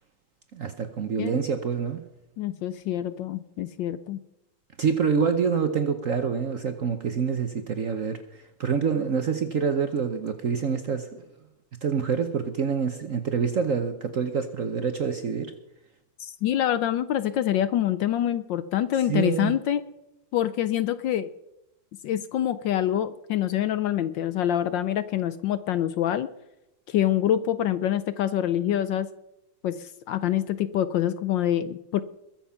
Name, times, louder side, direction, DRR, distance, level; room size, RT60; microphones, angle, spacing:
voice 1, 0.5-2.0 4.8-11.3 11.8-15.5 19.1-19.5, right 6 dB, 55° right, 8 dB, 1.0 m, -26 dB
voice 2, 2.4-4.2 16.2-19.8 20.3-21.3 22.0-26.3 26.9-29.1 29.6-32.0, left 11 dB, 70° left, 13 dB, 1.2 m, -26 dB
22.0 x 7.4 x 5.7 m, 0.90 s
omnidirectional pair, 2.4 m